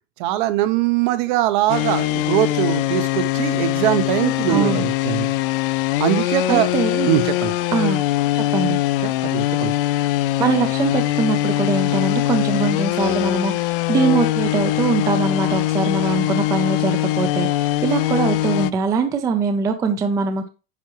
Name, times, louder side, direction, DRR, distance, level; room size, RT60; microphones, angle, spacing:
voice 1, 0.2-5.3 6.0-6.7 7.1-7.5 9.0-9.7, right 14 dB, 50° right, 12 dB, 0.9 m, -21 dB
sound 1, 1.7-18.7, left 16 dB, 60° left, 0.5 m, -22 dB
voice 2, 4.5-4.8 6.5-7.1 7.7-8.0 8.3-8.8 10.4-20.5, right 4 dB, 10° right, 7 dB, 0.4 m, -22 dB
9.6 x 5.8 x 3.0 m, 0.31 s
supercardioid pair, 170°, 30 cm